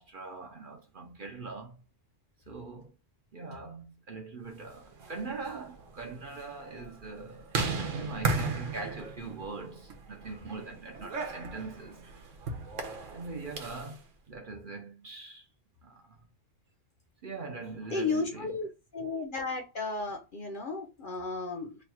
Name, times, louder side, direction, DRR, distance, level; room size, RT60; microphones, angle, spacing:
voice 1, 0.0-1.8 2.5-2.9 3.3-7.5 7.8-12.0 13.1-15.5 15.8-16.2 17.2-18.6, right 3 dB, 50° right, 0.8 m, -42 dB
sound 1, 4.8-13.9, right 4 dB, 75° right, 1.1 m, -36 dB
voice 2, 17.9-18.7 18.9-21.8, left 3 dB, 50° left, 0.7 m, -33 dB
3.2 x 2.3 x 4.2 m
omnidirectional pair, 1.3 m